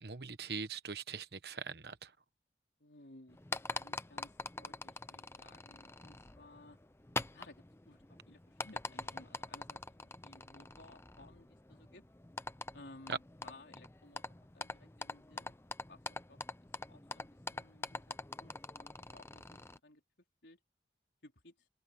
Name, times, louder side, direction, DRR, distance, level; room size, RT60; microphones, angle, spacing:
voice 1, 0.0-2.1 13.1-13.2, right 5 dB, 65° right, 1.1 m, -41 dB
voice 2, 2.8-3.4 3.7-6.8 7.3-12.0 12.7-15.5 15.9-16.4 16.9-20.0 20.4-20.6 21.2-21.5, left 2 dB, 75° left, 3.9 m, -59 dB
sound 1, 3.3-19.8, left 3 dB, 15° left, 0.6 m, -45 dB
open air
head